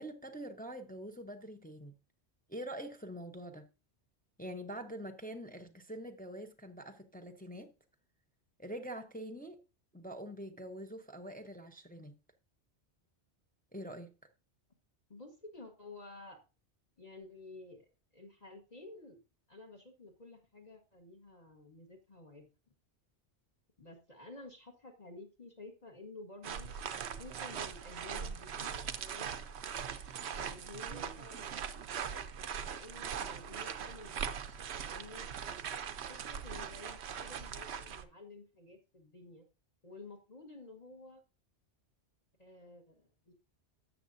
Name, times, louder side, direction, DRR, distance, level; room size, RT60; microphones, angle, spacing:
voice 1, 0.0-2.0 2.5-3.7 4.4-7.7 8.6-9.6 9.9-12.1 13.7-14.3, right 1 dB, 10° left, 0.7 m, -45 dB
voice 2, 15.1-16.4 17.0-17.9 18.1-19.2 19.5-22.5 23.8-29.5 30.3-31.7 32.6-34.3 34.7-35.3 36.1-39.4 39.8-41.2 42.4-43.3, left 2 dB, 35° left, 1.4 m, -52 dB
sound 1, 26.4-38.0, right 7 dB, 70° right, 0.9 m, -41 dB
12.5 x 7.6 x 2.7 m
omnidirectional pair, 1.2 m